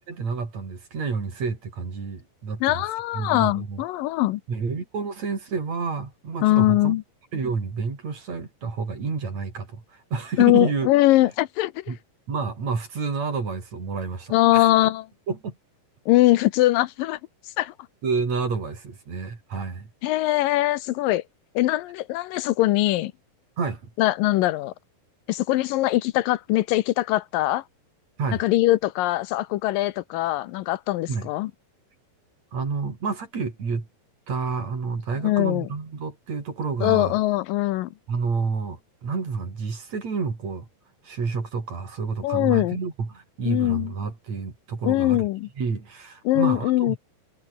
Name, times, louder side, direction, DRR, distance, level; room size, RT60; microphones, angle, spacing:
voice 1, 0.1-2.9 3.1-3.8 4.5-7.0 7.3-10.9 11.9-12.0 12.3-14.7 15.3-15.6 18.0-19.9 23.6-23.9 28.2-28.4 31.1-31.3 32.5-33.9 34.3-37.1 38.1-40.7 41.0-45.2 45.6-47.0, right 4 dB, 50° right, 5.7 m, -29 dB
voice 2, 2.6-4.4 6.4-7.0 10.4-11.8 14.3-15.0 16.1-17.2 17.6-17.7 20.0-21.2 21.6-23.1 24.0-24.7 25.3-27.6 28.4-31.5 35.2-35.7 36.8-37.9 42.2-42.8 43.5-43.9 44.8-45.5 46.2-47.0, left 16 dB, 80° left, 2.4 m, -21 dB
omnidirectional pair, 4.1 m